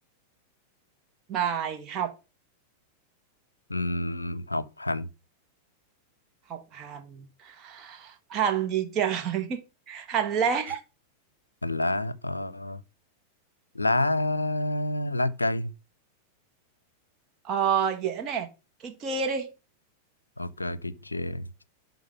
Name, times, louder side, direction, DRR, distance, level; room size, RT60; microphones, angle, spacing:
voice 1, 1.3-2.1 6.5-10.8 17.4-18.5 18.8-19.5, right 7 dB, 30° right, 1.5 m, -29 dB
voice 2, 3.7-5.1 11.6-12.8 13.7-15.7 20.4-21.4, left 1 dB, 80° left, 0.5 m, -28 dB
11.5 x 3.9 x 5.5 m
figure-of-eight pair, 90°, 0 cm